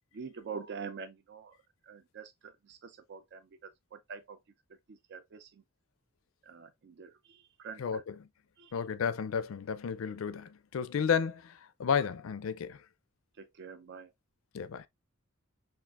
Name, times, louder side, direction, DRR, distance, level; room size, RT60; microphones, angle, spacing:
voice 1, 0.1-1.5 1.8-4.4 4.7-5.6 6.4-8.0 8.6-8.8 13.4-14.1, right 5 dB, 55° right, 0.4 m, -46 dB
voice 2, 8.7-12.8 14.5-14.9, left 6 dB, 75° left, 0.4 m, -32 dB
5.9 x 2.4 x 2.4 m
head